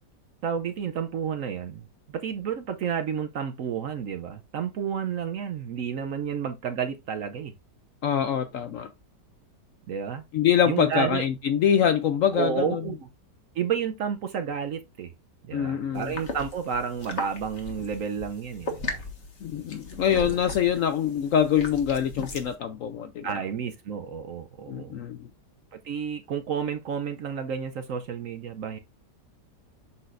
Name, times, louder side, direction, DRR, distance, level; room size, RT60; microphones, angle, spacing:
voice 1, 0.4-7.5 9.9-10.2 10.7-11.2 12.3-13.1 13.5-15.1 15.4-19.0 20.0-20.4 23.2-25.0 25.7-28.8, right 7 dB, 65° right, 0.9 m, -31 dB
voice 2, 8.0-8.9 10.3-12.8 15.5-16.1 19.4-23.3 24.7-25.3, left 8 dB, 70° left, 0.8 m, -24 dB
sound 1, 15.9-22.5, left 3 dB, 45° left, 1.6 m, -38 dB
7.5 x 5.9 x 2.5 m
omnidirectional pair, 1.9 m